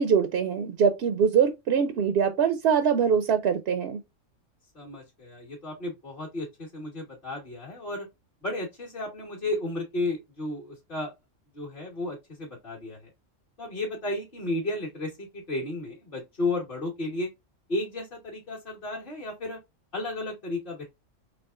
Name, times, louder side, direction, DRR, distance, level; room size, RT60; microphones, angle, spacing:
voice 1, 0.0-4.0, right 7 dB, 65° right, 0.7 m, -23 dB
voice 2, 4.7-8.1 8.4-11.1 11.5-13.1 13.6-17.3 17.7-19.6 19.9-20.8, left 2 dB, 45° left, 1.4 m, -33 dB
4.6 x 3.1 x 2.4 m
omnidirectional pair, 1.3 m